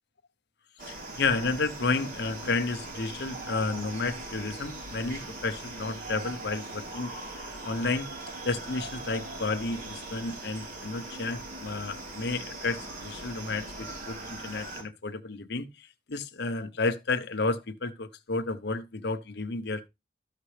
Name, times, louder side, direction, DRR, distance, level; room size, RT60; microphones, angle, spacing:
voice 1, 0.8-7.1 7.4-8.1 8.4-19.9, left 3 dB, 65° left, 0.9 m, -32 dB
sound 1, 0.8-14.8, right 2 dB, 55° right, 3.8 m, -40 dB
13.0 x 6.6 x 3.3 m
head